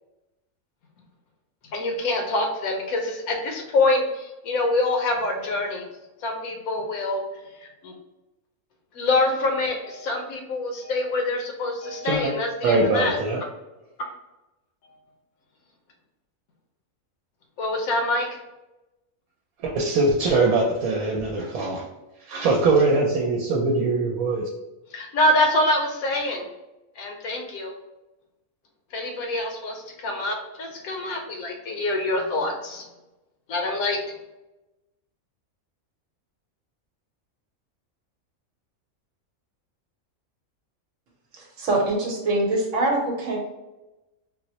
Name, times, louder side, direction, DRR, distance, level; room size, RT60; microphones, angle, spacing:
voice 1, 1.7-5.8 6.2-7.2 7.8-7.9 8.9-13.2 14.0-14.1 17.6-18.3 24.9-26.4 27.0-27.7 28.9-32.9 33.5-34.0, left 2 dB, 90° left, 3 dB, 1.1 m, -25 dB
voice 2, 12.6-13.4 19.6-21.8 22.3-24.5, right 3 dB, 90° right, -2 dB, 1.0 m, -22 dB
voice 3, 41.4-43.4, right 2 dB, 65° right, 0 dB, 1.2 m, -24 dB
4.0 x 2.0 x 2.7 m, 1.0 s
omnidirectional pair, 1.4 m